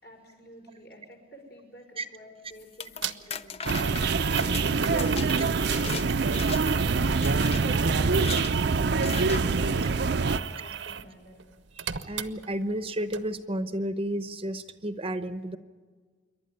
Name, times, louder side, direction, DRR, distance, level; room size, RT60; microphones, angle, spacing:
voice 1, 0.0-8.4 9.1-10.0 10.3-11.4, equal, 60° left, 1 dB, 5.7 m, -50 dB
sound 1, 2.6-6.1 6.3-6.8 7.2-7.6 8.1-8.5 9.0-9.4, left 6 dB, 35° left, 0.6 m, -38 dB
sound 2, 3.0-3.1 3.7-11.1 11.4-12.8 13.1-13.2, right 8 dB, 75° right, 0.9 m, -35 dB
sound 3, 3.7-10.4, right 4 dB, 60° right, 0.6 m, -25 dB
voice 2, 11.8-15.6, right 1 dB, 30° right, 11 dB, 0.8 m, -32 dB
28.0 x 12.0 x 9.8 m, 1.5 s
head